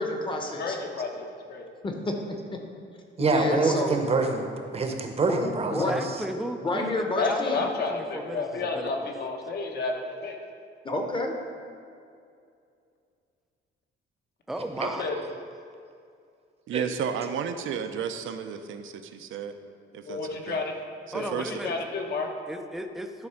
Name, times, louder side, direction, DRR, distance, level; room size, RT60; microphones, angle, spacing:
voice 1, 0.0-0.8 1.8-2.6 3.2-4.0 5.7-6.0 6.6-7.7 10.8-11.4, left 2 dB, 25° left, 3 dB, 0.9 m, -29 dB
voice 2, 0.6-1.6 7.2-10.4 15.0-15.1 20.1-20.7 21.1-22.3, left 4 dB, 55° left, 2 dB, 1.1 m, -31 dB
voice 3, 3.2-4.4 4.7-6.0 14.8-14.9 16.7-16.8, right 3 dB, 30° right, 4 dB, 0.8 m, -25 dB
voice 4, 5.3-9.1 14.5-15.1 21.1-21.8 22.5-23.3, right 1 dB, ahead, 5 dB, 0.4 m, -35 dB
voice 5, 16.7-19.5 19.9-20.2 20.5-20.6 21.1-21.5, right 7 dB, 75° right, 8 dB, 0.6 m, -32 dB
11.0 x 4.3 x 5.7 m, 2.4 s
cardioid pair, 170°, 21 cm